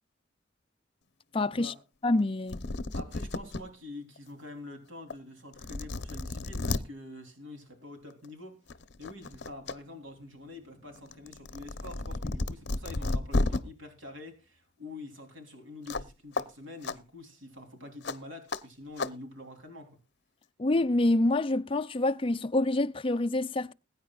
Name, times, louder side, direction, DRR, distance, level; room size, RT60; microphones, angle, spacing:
voice 1, 1.3-1.7 2.0-2.6 20.6-23.7, left 2 dB, 30° left, 0.5 m, -26 dB
sound 1, 2.2-2.3 2.5-3.6 4.2-4.3 5.1-5.2 5.5-6.8 8.1-8.3 8.7-9.7 10.1-13.6 15.9-16.1 16.3-16.4 16.8-17.0 18.0-18.2 18.5-18.6 19.0-19.1, left 2 dB, 60° left, 0.8 m, -32 dB
voice 2, 2.9-8.6 9.0-20.0, left 2 dB, 85° right, 3.5 m, -46 dB
21.5 x 9.5 x 2.4 m
head